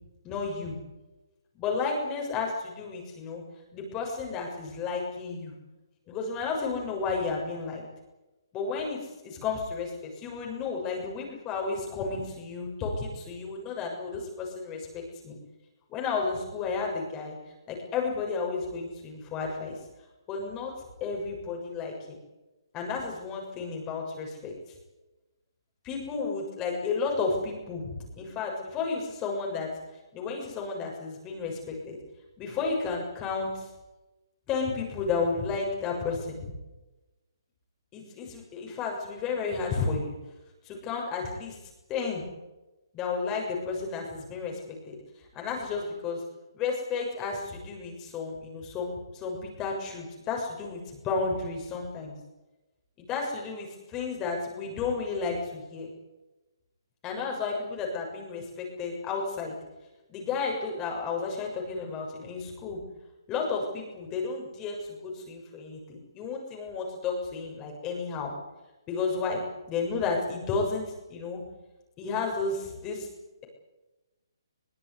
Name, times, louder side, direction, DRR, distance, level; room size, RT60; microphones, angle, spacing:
voice 1, 0.2-0.8 1.5-3.4 3.7-5.5 6.1-7.8 8.5-15.4 15.9-17.4 17.7-19.8 20.3-20.7 21.0-22.2 22.7-24.5 25.8-29.7 30.1-32.0 32.4-33.7 34.5-36.5 37.9-40.1 40.6-41.6 41.9-42.2 42.9-45.0 45.3-46.2 46.5-52.1 53.0-55.9 57.0-59.5 60.1-62.8 63.3-68.3 68.9-71.4 72.0-73.1, left 4 dB, 20° left, 0 dB, 6.9 m, -32 dB
23.0 x 20.5 x 9.7 m, 1.1 s
hypercardioid pair, 145°, 2 cm